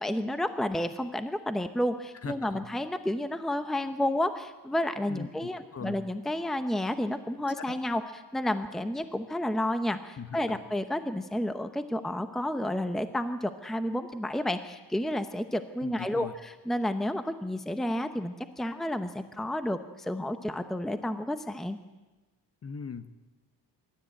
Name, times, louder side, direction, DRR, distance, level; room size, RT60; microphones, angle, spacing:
voice 1, 0.0-21.8, left 1 dB, ahead, 9 dB, 0.9 m, -31 dB
voice 2, 2.2-2.7 5.1-6.0 10.2-10.6 15.8-16.3 22.6-23.2, left 5 dB, 35° left, 10 dB, 1.2 m, -40 dB
24.0 x 13.0 x 8.9 m, 1.2 s
cardioid pair, 125°, 41 cm